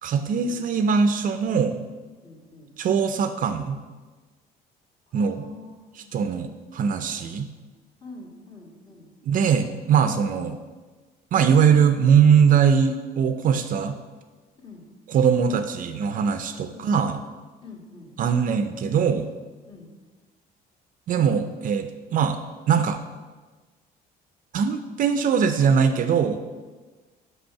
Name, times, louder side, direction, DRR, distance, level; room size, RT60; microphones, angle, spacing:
voice 1, 0.0-1.8 2.8-3.8 5.1-5.4 6.0-7.5 9.2-10.6 11.3-14.0 15.1-17.2 18.2-19.3 21.1-22.4 22.7-23.0 24.5-26.4, right 7 dB, 50° right, 9 dB, 0.5 m, -21 dB
voice 2, 2.2-2.7 5.1-5.7 6.0-6.3 8.0-9.1 14.6-14.9 16.7-16.9 17.6-18.1 19.7-19.9, left 3 dB, 30° left, -3 dB, 2.0 m, -45 dB
6.1 x 5.3 x 5.7 m, 1.3 s
cardioid pair, 110°, 17 cm